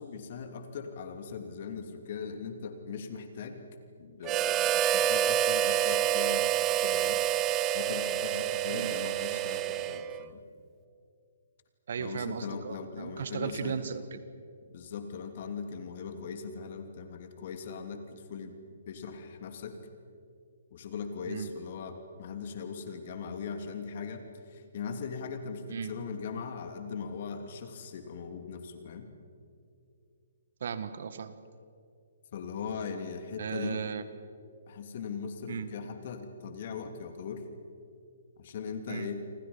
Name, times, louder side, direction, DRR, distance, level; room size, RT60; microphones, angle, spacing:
voice 1, 0.0-3.6 4.0-7.2 7.7-10.4 12.0-13.9 14.7-18.6 18.9-19.8 20.7-29.1 32.3-33.8 34.7-37.5 38.4-39.2, left 5 dB, 50° left, 6 dB, 2.9 m, -40 dB
Harmonica, 4.2-10.3, right 10 dB, 25° right, 0.8 m, -28 dB
voice 2, 11.9-14.2 21.3-21.5 25.7-25.9 30.6-31.4 33.4-34.0 35.5-35.7 38.9-39.1, right 6 dB, 60° right, 12 dB, 1.6 m, -36 dB
29.0 x 25.0 x 5.7 m, 2.4 s
hypercardioid pair, 135°, 0 cm